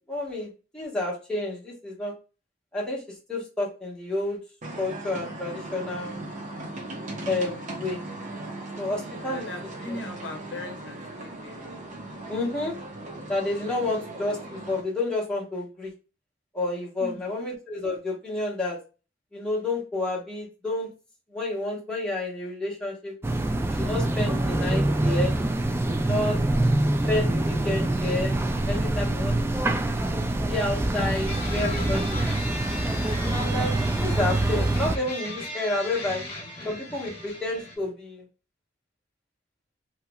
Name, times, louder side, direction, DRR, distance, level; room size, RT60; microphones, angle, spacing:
voice 1, 0.1-2.1 2.7-3.0 3.3-4.4 4.8-6.2 7.2-8.0 8.8-9.5 9.9-10.0 12.3-12.7 13.3-15.9 16.5-18.8 19.3-20.9 21.3-23.1 23.7-25.4 25.9-26.4 27.1-28.3 28.7-29.3 29.7-29.8 30.5-32.3 33.2-36.2 36.6-38.2, left 2 dB, 5° left, -5 dB, 1.4 m, -30 dB
sound 1, 4.6-14.8, right 2 dB, 45° right, 0.9 m, -38 dB
voice 2, 9.0-11.7 17.0-17.4 26.2-26.5, left 2 dB, 80° left, 4 dB, 0.8 m, -40 dB
sound 2, 23.2-35.0, right 1 dB, 15° right, 0.3 m, -25 dB
sound 3, 31.3-37.8, left 1 dB, 35° left, 1.3 m, -37 dB
3.1 x 2.9 x 2.2 m, 0.32 s
head